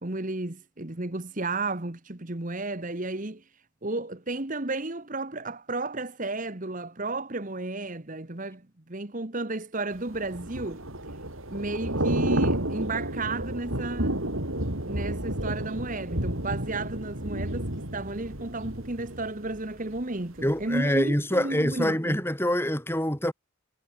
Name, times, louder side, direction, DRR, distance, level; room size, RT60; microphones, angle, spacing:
voice 1, 0.0-3.4 3.8-8.6 8.9-10.8 11.5-14.2 14.9-22.2, right 2 dB, 40° right, 1.5 m, -33 dB
Thunder / Rain, 10.1-20.0 20.4-20.6, right 1 dB, 75° right, 6.1 m, -31 dB
voice 2, 20.4-23.3, equal, 10° left, 5.6 m, -25 dB
head